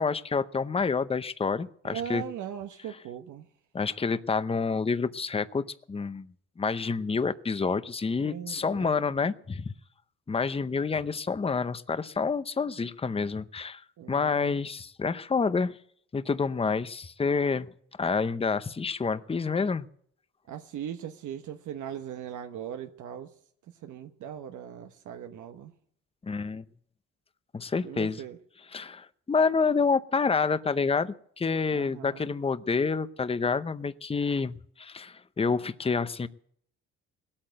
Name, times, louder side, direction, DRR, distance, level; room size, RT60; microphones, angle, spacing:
voice 1, 0.0-2.2 3.7-6.3 6.6-9.6 10.3-13.8 14.1-15.8 16.1-17.7 18.0-19.9 26.2-26.6 27.5-28.2 28.7-36.3, left 4 dB, 20° left, 14 dB, 0.7 m, -28 dB
voice 2, 1.8-3.4 8.2-9.3 14.0-14.6 20.5-23.3 23.8-25.7 27.8-28.4 31.7-32.2, right 9 dB, 75° right, 6 dB, 1.1 m, -39 dB
18.5 x 8.8 x 7.8 m, 0.65 s
cardioid pair, 90°, 30 cm